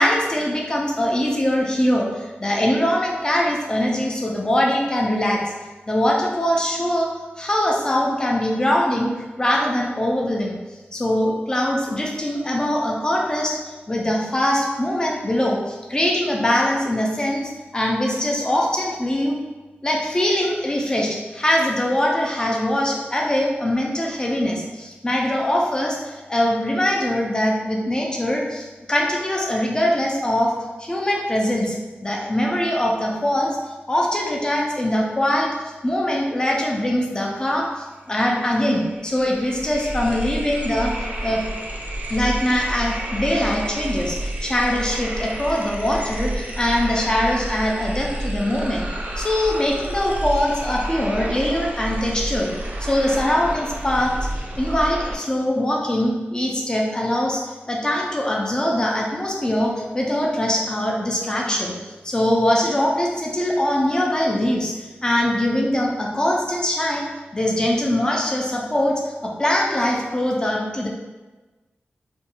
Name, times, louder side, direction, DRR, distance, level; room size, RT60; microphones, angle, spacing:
voice 1, 0.0-5.4 5.9-7.1 7.4-10.6 10.9-13.6 13.9-19.4 19.8-30.5 30.8-31.8 32.0-33.6 33.9-40.9 41.2-41.4 42.1-48.9 49.2-52.5 52.8-54.1 54.6-57.4 57.7-61.8 62.0-67.1 67.3-70.9, left 1 dB, 20° left, -1 dB, 0.4 m, -22 dB
sound 1, 38.2-38.3 38.5-55.2, right 1 dB, 45° right, 0.3 m, -30 dB
2.5 x 2.2 x 2.8 m, 1.2 s
wide cardioid pair, 95°, 4 cm